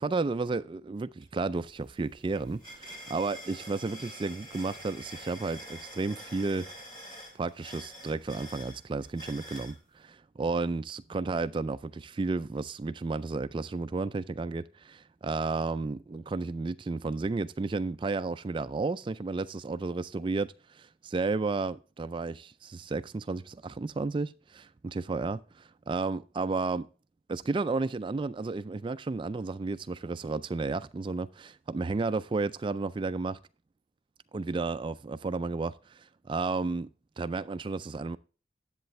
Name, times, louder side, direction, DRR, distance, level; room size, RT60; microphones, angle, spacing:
voice 1, 0.0-6.7 7.3-26.9 27.3-33.4 34.3-36.9 37.2-38.2, right 3 dB, 30° right, 0.3 m, -32 dB
sound 1, 1.2-1.3 1.6-9.8, equal, 25° left, 3.6 m, -46 dB
10.5 x 7.9 x 3.2 m
head